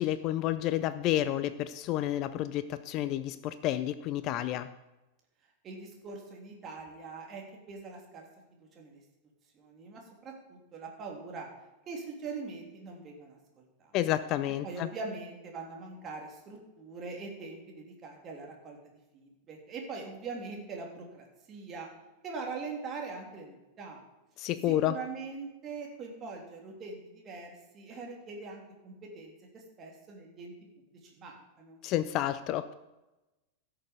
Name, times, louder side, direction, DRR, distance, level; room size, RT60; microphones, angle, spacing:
voice 1, 0.0-4.7 13.9-14.9 24.4-25.0 31.8-32.7, left 13 dB, 40° left, 14 dB, 0.5 m, -30 dB
voice 2, 5.6-8.3 8.7-9.0 9.5-11.5 11.9-13.4 13.8-13.9 14.6-18.8 19.1-21.9 22.2-24.0 24.7-30.5 31.0-31.8, right 4 dB, 30° right, 0 dB, 3.0 m, -42 dB
16.0 x 6.8 x 5.2 m, 1.0 s
figure-of-eight pair, 90°, 0 cm